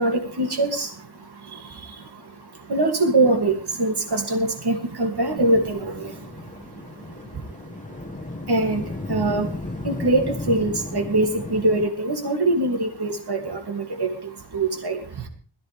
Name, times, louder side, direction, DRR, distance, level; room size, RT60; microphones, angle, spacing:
voice 1, 0.0-15.3, right 2 dB, 55° right, 3 dB, 2.8 m, -24 dB
sound 1, 5.4-11.9, left 2 dB, 15° left, 1.3 m, -34 dB
20.5 x 14.5 x 3.5 m, 0.39 s
wide cardioid pair, 105°, 46 cm